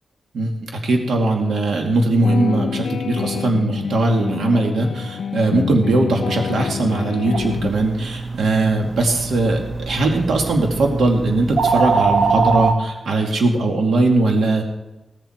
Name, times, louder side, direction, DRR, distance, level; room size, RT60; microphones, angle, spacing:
voice 1, 0.3-14.7, right 2 dB, 85° right, 2 dB, 2.5 m, -20 dB
sound 1, 2.2-7.7, left 7 dB, 85° left, 0.5 m, -27 dB
sound 2, 7.3-12.7, right 4 dB, 50° right, 1.4 m, -22 dB
17.5 x 14.5 x 4.6 m, 1.0 s
cardioid pair, 80°, 0 cm